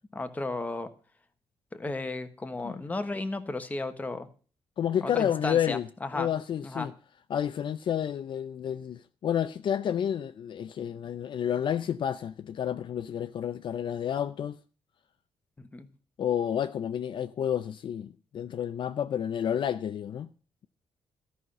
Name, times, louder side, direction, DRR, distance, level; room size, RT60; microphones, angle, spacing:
voice 1, 0.1-0.9 1.7-4.3 5.0-6.3 6.6-6.9 15.6-15.9, left 2 dB, 15° left, 1.2 m, -34 dB
voice 2, 4.8-5.9 6.1-6.9 7.3-14.6 16.2-20.3, left 9 dB, 50° left, 0.5 m, -30 dB
13.5 x 5.7 x 7.7 m
cardioid pair, 145°, 10 cm